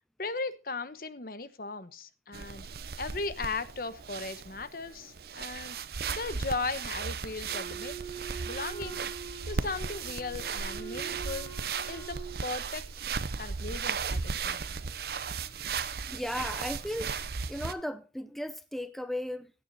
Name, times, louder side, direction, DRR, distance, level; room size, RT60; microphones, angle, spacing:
voice 1, 0.2-2.7 3.0-5.8 6.1-9.0 9.4-11.5 11.9-12.8 13.4-14.6, left 3 dB, 55° left, 1.1 m, -37 dB
sound 1, 2.3-17.7, right 5 dB, 55° right, 0.7 m, -36 dB
Wind instrument woodwind instrument, 7.5-12.4, right 6 dB, 25° left, 4.7 m, -44 dB
voice 2, 16.1-17.1 17.5-19.5, left 1 dB, ahead, 0.7 m, -35 dB
16.0 x 9.8 x 4.1 m
head